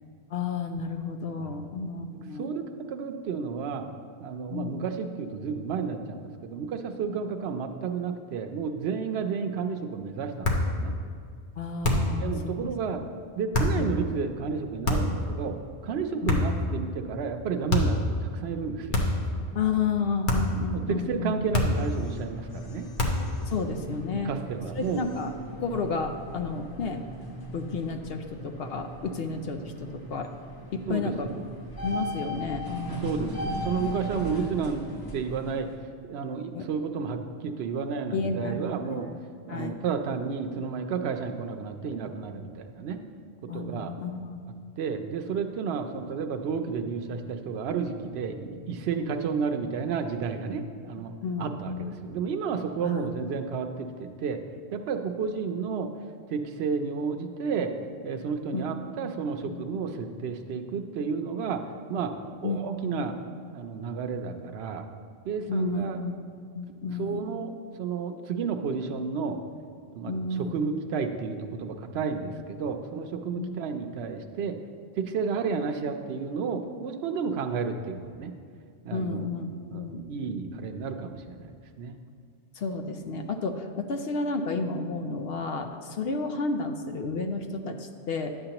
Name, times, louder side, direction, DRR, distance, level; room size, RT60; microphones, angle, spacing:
voice 1, 0.3-2.4 4.5-4.8 11.6-12.7 13.7-13.9 16.2-16.4 19.5-21.3 23.5-24.4 24.8-27.0 27.5-30.3 30.7-31.3 31.8-33.6 36.5-36.6 38.1-38.6 38.9-39.2 39.5-39.8 43.5-44.5 51.2-51.9 52.8-53.1 58.5-58.7 59.5-59.6 62.4-63.0 65.5-67.2 70.1-70.5 73.4-73.5 78.9-80.0 82.5-88.4, left 4 dB, 65° left, 6 dB, 0.8 m, -31 dB
voice 2, 2.4-3.9 4.2-10.9 12.2-13.0 13.4-15.6 15.8-19.0 20.7-22.9 24.1-25.0 30.9-31.4 33.0-34.8 35.1-35.7 36.1-39.1 39.5-43.0 43.5-43.9 44.8-54.4 54.7-55.9 56.3-57.7 58.0-61.6 61.9-62.1 62.4-63.1 63.5-64.8 65.2-66.0 67.0-67.5 67.8-69.4 69.9-70.1 70.4-74.5 75.0-78.3 78.8-79.2 79.7-81.5 81.8-82.0, right 5 dB, 70° right, 6 dB, 0.9 m, -31 dB
sound 1, 10.4-10.7 11.8-12.2 13.5-13.8 14.8-15.2 16.3-16.7 17.7-18.0 18.9-19.3 20.3-20.6 21.5-21.9 23.0-23.3, left 2 dB, 50° left, 1.1 m, -25 dB
sound 2, 21.3-35.7, equal, 20° left, 1.0 m, -39 dB
11.0 x 7.8 x 2.9 m, 2.3 s
omnidirectional pair, 1.1 m